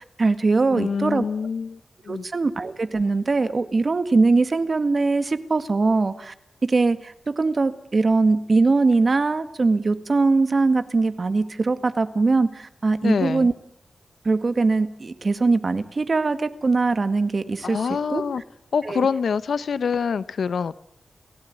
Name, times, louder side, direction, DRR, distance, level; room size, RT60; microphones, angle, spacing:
voice 1, 0.0-1.2 2.1-6.3 6.6-13.5 14.3-17.8 18.1-18.2 18.8-19.1, right 3 dB, 40° right, 1.8 m, -21 dB
voice 2, 0.7-1.8 2.0-2.2 13.0-13.5 17.6-18.4 18.7-20.8, left 6 dB, 70° left, 1.1 m, -25 dB
29.0 x 17.0 x 9.5 m
wide cardioid pair, 130°, 0 cm